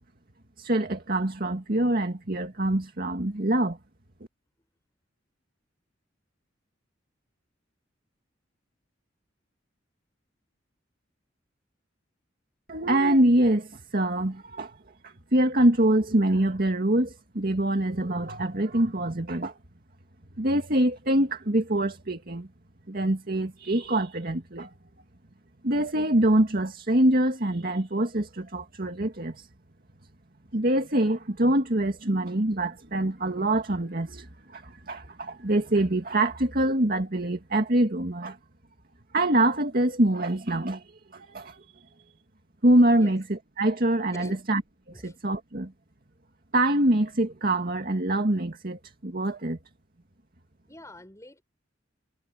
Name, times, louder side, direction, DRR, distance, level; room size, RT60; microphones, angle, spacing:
voice 1, 0.6-3.8 12.7-14.8 15.0-19.5 20.4-22.5 22.9-24.7 25.6-29.5 30.5-38.4 39.1-40.8 41.1-41.6 42.6-44.6 45.0-45.7 46.5-49.6, right 1 dB, 50° right, 2.2 m, -25 dB
voice 2, 44.1-44.4 44.9-45.2 50.7-51.4, left 1 dB, 15° left, 7.0 m, -46 dB
head